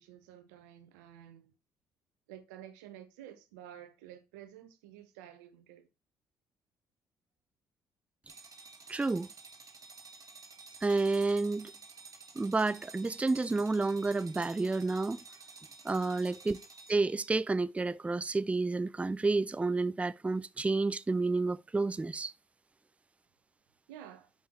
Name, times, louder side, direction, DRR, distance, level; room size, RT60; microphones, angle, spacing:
voice 1, 0.0-1.5 2.3-5.9 23.9-24.3, right 11 dB, 90° right, 0.8 m, -51 dB
sound 1, 8.3-17.3, right 4 dB, 40° right, 1.6 m, -52 dB
voice 2, 8.9-9.3 10.8-11.7 12.4-15.2 15.8-16.6 16.9-22.3, right 3 dB, 15° right, 0.3 m, -30 dB
6.3 x 5.5 x 3.6 m
hypercardioid pair, 50°, 9 cm